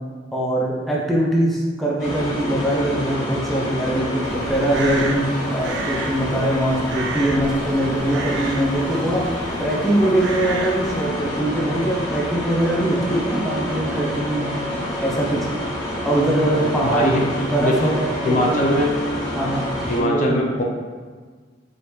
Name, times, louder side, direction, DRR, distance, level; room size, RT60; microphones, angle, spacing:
voice 1, 0.3-5.2 5.5-9.3 9.6-14.5 15.0-15.5 16.0-18.6 19.3-19.6 20.0-20.4, right 1 dB, ahead, -5 dB, 0.6 m, -22 dB
sound 1, 2.0-20.0, equal, 20° left, 1.4 m, -28 dB
Crow, 4.2-11.1, right 3 dB, 70° right, 0.5 m, -33 dB
voice 2, 16.8-17.2 17.6-17.9 18.2-19.0 19.8-20.6, left 1 dB, 45° left, -1 dB, 0.5 m, -21 dB
4.8 x 2.8 x 3.1 m, 1.5 s
head